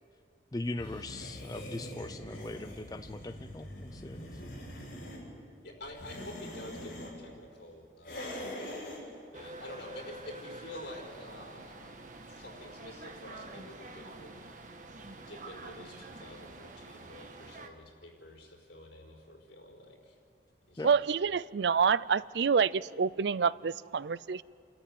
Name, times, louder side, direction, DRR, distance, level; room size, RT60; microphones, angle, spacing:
voice 1, 0.5-4.4 20.8-20.9, left 2 dB, 20° left, 8 dB, 0.5 m, -40 dB
sound 1, 0.7-5.2 5.8-7.1 8.0-9.0, left 1 dB, 50° left, 7.2 m, -43 dB
voice 2, 5.6-8.5 9.0-14.5 15.2-20.2 20.7-21.0 21.2-21.3, left 1 dB, 75° left, -1 dB, 4.8 m, -49 dB
sound 2, 9.3-17.7, right 2 dB, 45° right, 1.5 m, -47 dB
voice 3, 20.8-24.4, right 6 dB, 75° right, 19 dB, 0.4 m, -27 dB
28.5 x 13.5 x 9.1 m, 2.4 s
head